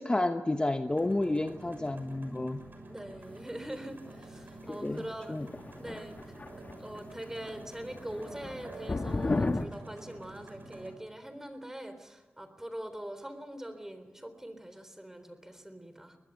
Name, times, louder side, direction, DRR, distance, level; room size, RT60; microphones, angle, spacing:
voice 1, 0.0-2.6 4.7-5.0 5.3-5.5, left 2 dB, 25° left, 7 dB, 1.1 m, -30 dB
sound 1, 0.9-10.9, right 2 dB, 55° right, 6.4 m, -48 dB
voice 2, 2.9-5.4 5.8-6.2 6.8-16.2, right 1 dB, 10° right, 10 dB, 3.8 m, -43 dB
sound 2, 5.4-7.0 7.3-7.6 7.9-9.7, left 3 dB, 40° left, 1.3 m, -33 dB
23.5 x 19.5 x 8.3 m, 1.3 s
wide cardioid pair, 75°, 4 cm